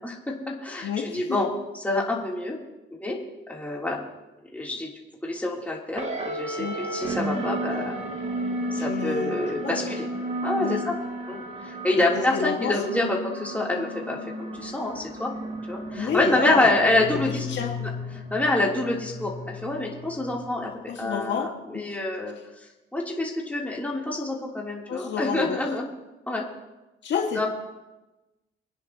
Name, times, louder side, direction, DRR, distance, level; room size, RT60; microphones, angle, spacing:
voice 1, 0.0-1.5 1.8-2.6 2.9-3.2 3.5-4.0 4.5-4.9 5.2-8.0 8.7-10.1 10.4-10.9 11.3-15.3 15.7-17.5 17.8-17.9 18.3-22.3 22.9-25.8 26.3-26.4 27.3-27.5, left 2 dB, 5° left, -3 dB, 3.3 m, -27 dB
voice 2, 0.8-1.4 6.6-6.8 8.8-9.4 9.6-9.9 10.6-10.8 12.0-12.1 12.3-12.8 16.0-16.7 17.1-17.2 17.5-17.7 20.9-22.0 24.9-25.6 27.0-27.5, left 7 dB, 65° left, 1 dB, 2.0 m, -29 dB
sound 1, 6.0-20.7, right 1 dB, 35° right, 2.2 m, -33 dB
25.0 x 10.0 x 3.0 m, 1.0 s
cardioid pair, 90°, 20 cm